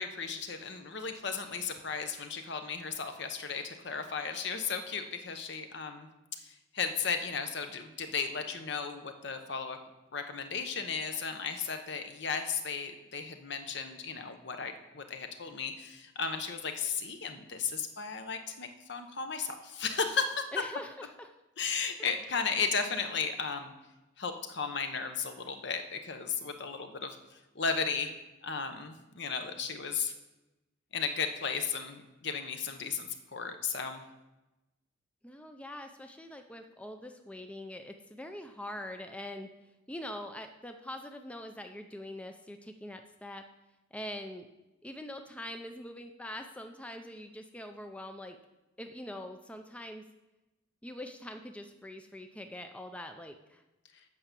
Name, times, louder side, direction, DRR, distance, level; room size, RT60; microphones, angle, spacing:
voice 1, 0.0-9.8 10.1-20.4 21.6-23.7 24.2-28.1 28.4-30.1 30.9-34.0, left 5 dB, 60° left, 7 dB, 0.9 m, -35 dB
voice 2, 20.5-21.3 22.0-22.3 35.2-39.5 39.9-43.4 43.9-44.5 44.8-48.4 48.8-50.0 50.8-53.6, left 1 dB, 5° left, 6 dB, 0.4 m, -43 dB
8.4 x 5.7 x 6.8 m, 1.0 s
head